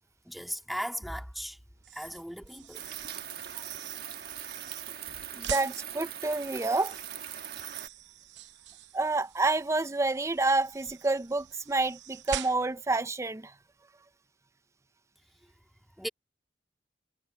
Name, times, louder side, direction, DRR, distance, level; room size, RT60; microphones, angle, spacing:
voice 1, 0.3-1.6 1.9-2.9 3.5-3.7 16.0-16.1, equal, ahead, 2.4 m, -37 dB
sound 1, 1.8-12.9, right 8 dB, 90° right, 0.8 m, -45 dB
sound 2, 2.7-7.9, right 10 dB, 60° right, 1.5 m, -41 dB
voice 2, 5.4-6.9 8.9-13.5, right 2 dB, 15° right, 0.5 m, -28 dB
head